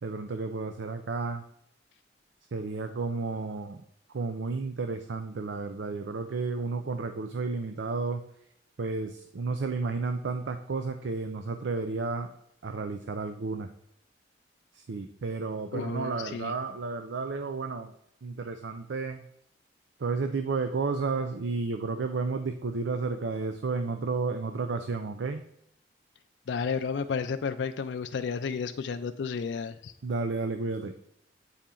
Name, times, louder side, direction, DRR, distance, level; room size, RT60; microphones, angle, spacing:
voice 1, 0.0-1.4 2.5-3.8 4.1-8.2 8.8-12.3 12.6-13.7 14.7-17.9 18.2-19.2 20.0-25.4 30.0-30.9, right 4 dB, 85° right, 7 dB, 0.5 m, -32 dB
voice 2, 15.7-16.5 26.5-29.9, left 5 dB, 75° left, 7 dB, 0.4 m, -32 dB
8.3 x 4.3 x 3.8 m, 0.73 s
head